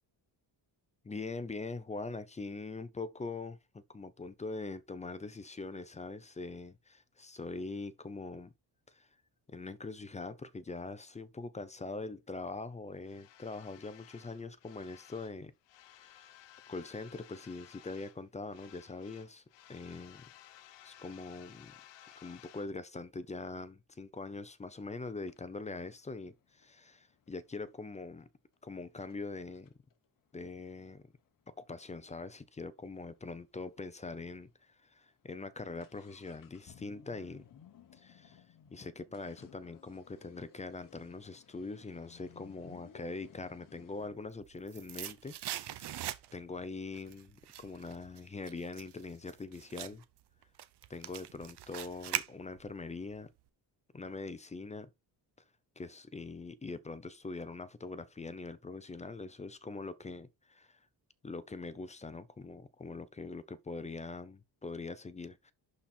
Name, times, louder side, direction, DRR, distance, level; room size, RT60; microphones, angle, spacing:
voice 1, 1.0-8.5 8.9-9.1 9.5-15.5 15.9-16.3 16.7-19.4 19.7-20.3 20.8-21.7 22.2-28.3 28.6-29.7 30.3-31.0 31.6-37.4 37.9-38.4 38.7-50.0 50.9-53.3 53.9-54.9 55.8-60.8 61.2-65.5, left 3 dB, 15° left, 0.6 m, -43 dB
sound 1, 13.0-15.4 15.6-18.2 18.5-22.7, left 12 dB, 85° left, 0.8 m, -57 dB
sound 2, 24.7-24.8 25.3-27.9 28.5-28.6 29.0-29.2 29.5-33.2 33.5-33.6 33.8-33.9 34.5-34.6 34.9-44.1, left 9 dB, 50° left, 1.2 m, -59 dB
sound 3, 44.2-46.6 46.9-52.8 53.1-53.2, right 12 dB, 70° right, 0.9 m, -42 dB
11.5 x 4.3 x 4.3 m
cardioid pair, 155°, 42 cm